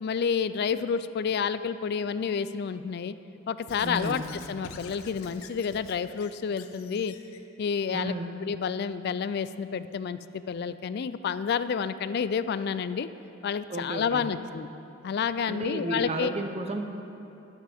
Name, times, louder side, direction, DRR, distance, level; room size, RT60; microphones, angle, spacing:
voice 1, 0.0-3.1 3.5-4.2 4.5-7.2 7.6-8.1 8.4-13.1 13.4-14.7 15.0-16.3, left 6 dB, 50° left, 14 dB, 0.3 m, -29 dB
Squeak / Writing, 3.7-7.4, left 5 dB, 85° left, 0.7 m, -48 dB
voice 2, 3.8-4.3 7.9-8.3 13.7-14.3 15.5-16.9, right 1 dB, 30° right, 5 dB, 0.7 m, -33 dB
11.5 x 11.5 x 3.5 m, 2.9 s
head